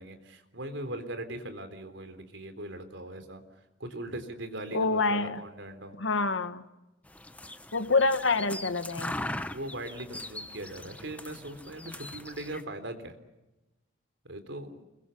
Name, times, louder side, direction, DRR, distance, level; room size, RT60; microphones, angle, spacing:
voice 1, 0.0-3.4 3.8-6.0 9.2-13.2 14.2-14.7, right 1 dB, 75° right, 8 dB, 3.8 m, -40 dB
voice 2, 4.7-5.4 6.0-6.6 7.7-9.2, left 3 dB, 85° left, 10 dB, 1.5 m, -26 dB
sound 1, 7.1-12.6, left 1 dB, 5° left, 0.9 m, -40 dB
29.0 x 22.5 x 7.1 m, 1.0 s
head